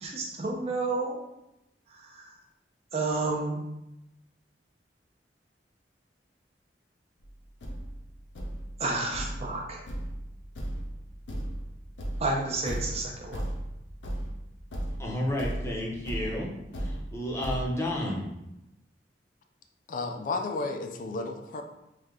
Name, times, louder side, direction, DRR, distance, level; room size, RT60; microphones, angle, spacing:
voice 1, 0.0-1.2 1.9-2.3 2.9-3.6 8.8-9.8 12.2-13.4, right 3 dB, 35° right, -1 dB, 0.6 m, -31 dB
Thump thud, 7.2-7.3 7.6-17.6, right 1 dB, 90° left, 0.6 m, -36 dB
voice 2, 15.0-16.5 16.8-18.3, left 1 dB, 15° left, -2 dB, 0.7 m, -31 dB
voice 3, 19.9-21.6, left 3 dB, 50° left, 5 dB, 0.3 m, -32 dB
3.2 x 2.7 x 3.6 m, 0.89 s
head